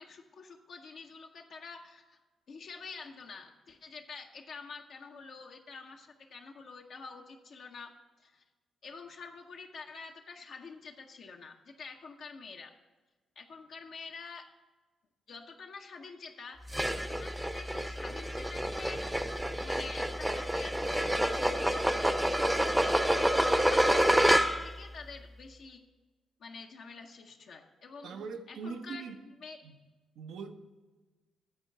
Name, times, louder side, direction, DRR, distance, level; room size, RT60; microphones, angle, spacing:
voice 1, 0.0-2.2 2.5-7.9 8.2-8.4 8.8-12.7 13.4-14.5 15.3-16.6 16.9-19.3 19.6-22.6 23.1-25.8 26.4-28.1 28.5-29.0 29.4-29.6, left 4 dB, 65° left, 2 dB, 0.7 m, -47 dB
sound 1, 16.7-24.8, right 1 dB, 10° right, 0.7 m, -28 dB
voice 2, 28.0-29.2 29.6-29.7 30.2-30.5, right 5 dB, 70° right, 7 dB, 0.7 m, -41 dB
9.5 x 4.5 x 7.2 m, 1.2 s
hypercardioid pair, 40°, 0 cm